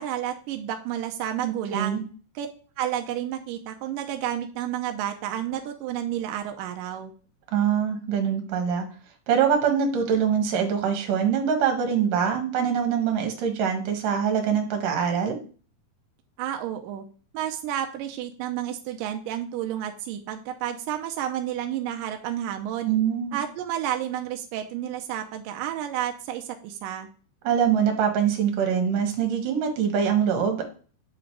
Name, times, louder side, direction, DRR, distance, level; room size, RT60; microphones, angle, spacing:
voice 1, 0.0-2.0 2.4-2.5 2.8-7.1 16.4-17.0 17.3-22.9 23.3-27.1, right 11 dB, 80° right, 5 dB, 2.0 m, -31 dB
voice 2, 1.4-2.0 7.5-8.9 9.3-15.4 22.8-23.4 27.4-30.6, right 7 dB, 65° right, 4 dB, 2.7 m, -24 dB
8.3 x 3.9 x 4.6 m, 0.39 s
omnidirectional pair, 4.6 m